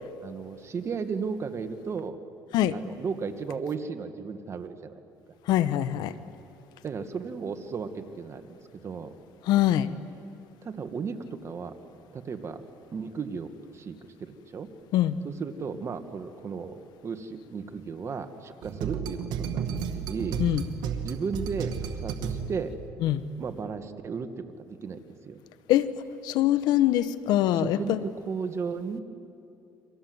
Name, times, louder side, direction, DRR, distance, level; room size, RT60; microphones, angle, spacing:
voice 1, 0.2-2.2 2.7-4.9 6.8-9.1 10.6-11.2 11.4-11.7 12.1-12.6 12.9-14.7 15.2-19.6 19.9-20.4 21.0-22.7 23.4-24.3 24.6-25.4 27.5-29.0, right 5 dB, 40° right, 8 dB, 2.0 m, -35 dB
voice 2, 5.5-6.1 9.5-9.9 14.9-15.2 20.4-20.6 23.0-23.2 25.7-25.9 26.2-28.0, left 13 dB, 80° left, 14 dB, 1.1 m, -23 dB
sound 1, 18.6-22.8, right 7 dB, 75° right, 2.1 m, -33 dB
29.5 x 24.5 x 8.1 m, 2.6 s
cardioid pair, 100°, 7 cm